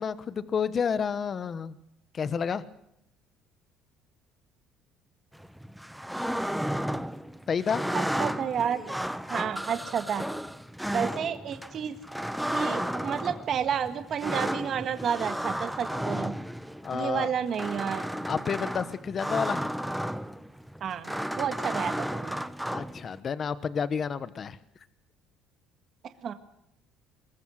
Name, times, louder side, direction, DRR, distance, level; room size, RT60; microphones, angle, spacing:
voice 1, 0.0-1.8 2.1-2.6 7.5-7.8 16.8-17.3 18.3-19.6 22.7-24.6, left 6 dB, 30° left, 14 dB, 1.1 m, -30 dB
sound 1, 5.3-23.2, equal, ahead, 0.8 m, -33 dB
voice 2, 7.9-8.8 9.3-10.2 10.9-11.9 12.5-16.3 16.9-18.1 20.8-22.4 26.2-26.3, right 8 dB, 40° right, 8 dB, 1.7 m, -31 dB
25.5 x 22.0 x 6.5 m, 0.78 s
cardioid pair, 145°, 0 cm